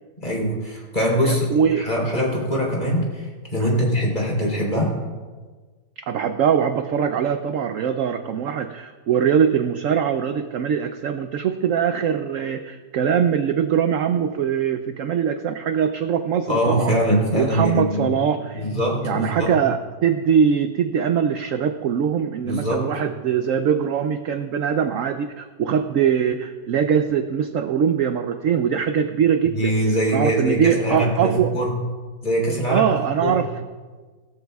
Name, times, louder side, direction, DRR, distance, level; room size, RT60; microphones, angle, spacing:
voice 1, 0.2-1.5 1.8-4.9 16.5-18.2 18.5-19.5 22.4-22.9 29.4-31.7 32.2-32.9 33.2-33.4, equal, 25° left, -2 dB, 3.6 m, -22 dB
voice 2, 1.2-1.8 6.0-17.0 17.3-18.7 19.0-29.7 30.1-31.5 32.7-33.5, right 8 dB, 70° right, 8 dB, 0.7 m, -22 dB
18.0 x 13.5 x 2.4 m, 1.4 s
omnidirectional pair, 1.9 m